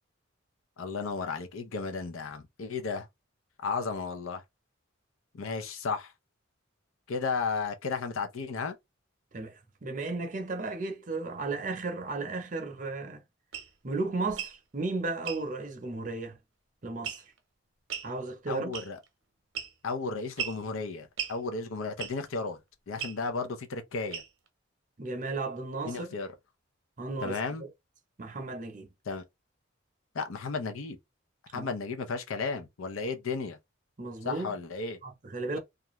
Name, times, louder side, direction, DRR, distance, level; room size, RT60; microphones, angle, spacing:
voice 1, 0.8-3.1 3.6-4.4 5.3-6.1 7.1-8.7 18.5-19.0 19.8-22.6 22.9-24.2 25.9-26.3 27.2-27.6 29.1-29.2 30.1-31.0 31.5-33.6 34.2-35.0, left 4 dB, 85° left, 0.6 m, -34 dB
voice 2, 9.3-13.2 13.8-16.4 16.8-17.2 18.0-18.7 25.0-26.1 27.0-27.7 28.2-28.9 31.5-31.7 34.0-34.5 35.0-35.6, right 3 dB, 40° right, 0.6 m, -34 dB
sound 1, 13.5-13.7 14.3-14.6 15.2-15.4 17.0-17.4 17.9-18.1 18.7-19.1 19.5-19.9 20.4-20.6 21.2-21.4 22.0-22.3 23.0-23.2 24.1-24.5, right 8 dB, 80° right, 0.7 m, -36 dB
2.4 x 2.2 x 3.0 m
head